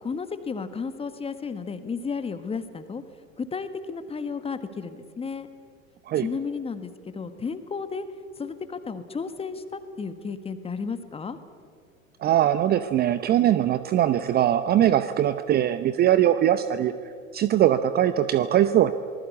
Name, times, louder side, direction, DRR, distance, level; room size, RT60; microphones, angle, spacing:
voice 1, 0.0-3.0 3.4-5.5 6.2-8.0 8.4-11.4, left 5 dB, 15° left, 11 dB, 1.5 m, -33 dB
voice 2, 12.2-16.9 17.3-18.9, right 11 dB, 25° right, 13 dB, 0.7 m, -21 dB
26.5 x 19.5 x 8.4 m, 2.2 s
figure-of-eight pair, 90°, 41 cm